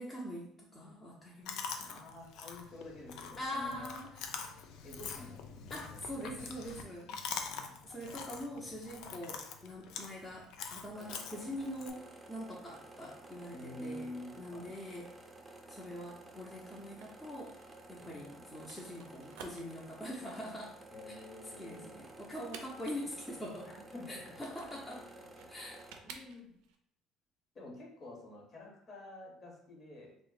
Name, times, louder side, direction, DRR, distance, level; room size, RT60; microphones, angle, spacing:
voice 1, 0.0-2.0 3.4-4.1 5.7-7.1 7.8-14.1 14.4-15.1 15.7-17.6 17.9-20.8 21.6-23.7 24.1-25.0 25.5-25.8, equal, 15° left, -4 dB, 0.6 m, -43 dB
Chewing mastication, 1.5-11.9, left 6 dB, 70° left, 0.3 m, -45 dB
voice 2, 1.9-3.9 4.8-5.6 5.9-6.5 7.0-7.8 9.0-9.2 13.5-14.8 18.0-18.5 20.9-22.0 23.6-24.4 24.7-25.7 26.0-26.5 27.5-30.2, left 1 dB, 45° left, -1 dB, 1.0 m, -49 dB
sound 1, 10.9-26.0, right 2 dB, 20° right, 0.5 m, -54 dB
sound 2, 16.5-26.8, right 6 dB, 80° right, 0.3 m, -55 dB
2.4 x 2.1 x 3.8 m, 0.69 s
supercardioid pair, 75°, 0 cm